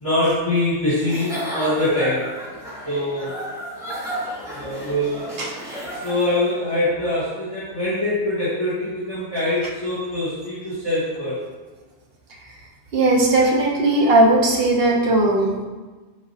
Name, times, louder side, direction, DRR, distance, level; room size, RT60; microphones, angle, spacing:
voice 1, 0.0-2.3 2.8-3.3 4.5-5.3 6.0-11.4, left 1 dB, 30° left, -10 dB, 1.3 m, -23 dB
Giggle / Chuckle chortle, 1.0-6.5, equal, 5° right, 1.3 m, -32 dB
voice 2, 12.9-15.6, right 2 dB, 65° right, -1 dB, 1.0 m, -17 dB
4.7 x 3.8 x 2.7 m, 1.3 s
omnidirectional pair, 1.1 m